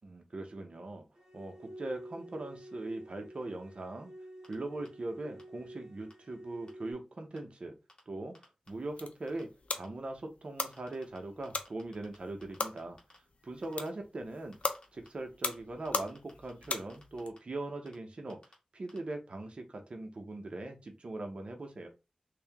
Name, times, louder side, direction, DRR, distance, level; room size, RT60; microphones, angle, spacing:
voice 1, 0.0-1.0 1.3-4.1 4.5-7.7 8.1-8.4 8.7-9.5 9.7-13.0 13.4-14.5 14.9-18.4 18.7-21.9, right 2 dB, 55° right, 4 dB, 0.8 m, -40 dB
sound 1, 1.2-6.9, right 1 dB, 35° right, 1.5 m, -50 dB
sound 2, 4.4-4.5 4.8-4.9 5.4-5.5 6.1-6.2 6.7-6.8 7.4-7.5 7.9-8.0 8.3-8.7 9.3-9.4 9.8-9.9 10.7-11.2 11.4-12.2 12.4-13.2 13.6-13.9 14.5-15.1 15.5-15.6 15.8-17.4 17.9-18.0 18.3-18.5 18.9-19.0, left 1 dB, 40° left, 1.4 m, -57 dB
sound 3, 8.7-17.3, left 3 dB, 70° left, 0.6 m, -40 dB
3.4 x 2.8 x 3.4 m, 0.28 s
wide cardioid pair, 95°, 2 cm